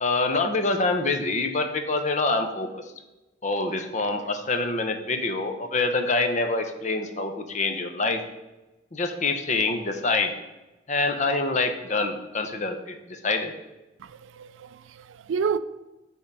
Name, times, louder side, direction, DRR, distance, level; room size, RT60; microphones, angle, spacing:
voice 1, 0.0-2.9 3.4-8.2 8.9-10.3 10.9-13.5, left 3 dB, 40° left, 0.7 m, -26 dB
voice 2, 14.0-15.6, right 6 dB, 75° right, 0.3 m, -30 dB
8.5 x 3.7 x 5.4 m
head